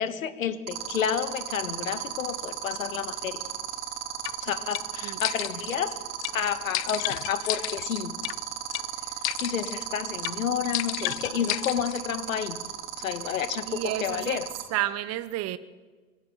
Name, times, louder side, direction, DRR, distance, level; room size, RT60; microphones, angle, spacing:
voice 1, 0.0-3.4 4.4-6.0 6.3-8.1 9.4-12.6 13.0-14.5, left 8 dB, 75° left, 2.0 m, -30 dB
sound 1, 0.7-14.6, right 11 dB, 60° right, 3.7 m, -34 dB
sound 2, 4.3-4.4 4.7-4.9 5.2-5.8 6.2-6.4 6.7-8.4 8.7-8.9 9.2-9.8 10.2-10.4 10.7-12.0, left 21 dB, 55° left, 0.6 m, -32 dB
voice 2, 13.7-14.4 14.7-15.6, right 14 dB, 40° right, 1.2 m, -31 dB
23.5 x 16.0 x 9.1 m
hypercardioid pair, 90°, 40 cm